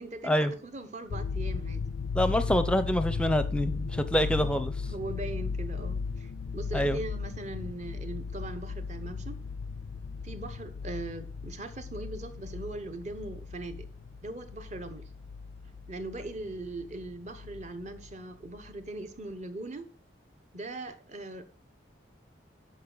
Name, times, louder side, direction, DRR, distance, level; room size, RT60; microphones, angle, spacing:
voice 1, 0.0-1.9 4.2-4.5 4.9-9.4 10.2-13.9 14.2-15.0 15.9-19.9 20.5-21.5, right 2 dB, 40° right, 0.9 m, -40 dB
sound 1, 1.1-18.2 18.5-18.8, left 5 dB, 75° left, 0.3 m, -36 dB
voice 2, 2.1-4.7 6.7-7.0, equal, 5° left, 0.6 m, -26 dB
10.5 x 5.1 x 3.9 m
head